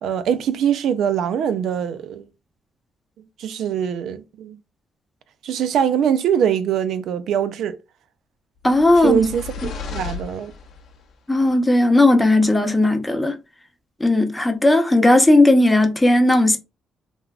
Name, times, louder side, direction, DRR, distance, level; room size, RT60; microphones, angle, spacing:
voice 1, 0.0-2.3 3.4-4.6 5.4-7.8 9.0-10.5, right 8 dB, 75° right, 0.4 m, -22 dB
sound 1, 8.6-11.0, left 5 dB, 70° left, 0.7 m, -34 dB
voice 2, 8.6-9.2 11.3-13.4 14.0-16.6, left 2 dB, 10° left, 0.6 m, -16 dB
3.3 x 2.1 x 2.3 m
cardioid pair, 90°, 0 cm